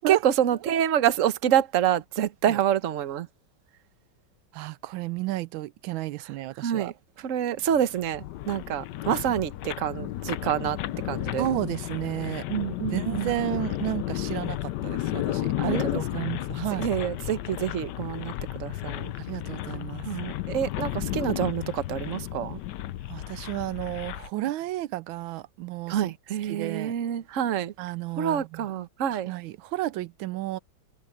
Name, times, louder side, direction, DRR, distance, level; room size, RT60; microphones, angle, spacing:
voice 1, 0.1-3.3 6.6-6.9 7.2-10.8 11.1-11.4 12.5-13.3 15.6-16.0 16.8-19.1 20.0-22.6 25.9-27.7 28.2-29.3, right 10 dB, 50° right, 1.1 m, -27 dB
voice 2, 4.5-6.9 11.4-12.5 12.9-16.9 19.1-20.1 23.1-26.1 26.5-26.9 27.8-28.7 29.1-30.6, right 16 dB, 85° right, 1.4 m, -32 dB
sound 1, 7.7-24.3, left 14 dB, 70° left, 1.1 m, -33 dB
omnidirectional pair, 2.1 m